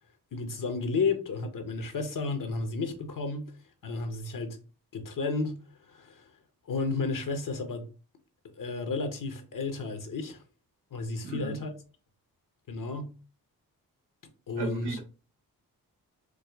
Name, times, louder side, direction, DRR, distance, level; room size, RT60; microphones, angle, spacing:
voice 1, 0.3-3.5 3.8-4.6 4.9-5.6 5.9-6.3 6.7-7.9 8.6-10.4 10.9-11.7 12.7-13.1 14.5-15.0, left 3 dB, 55° left, 0.8 m, -32 dB
voice 2, 11.2-11.6 14.6-15.0, right 3 dB, 90° right, 0.8 m, -35 dB
4.7 x 2.0 x 2.3 m
cardioid pair, 55°, 38 cm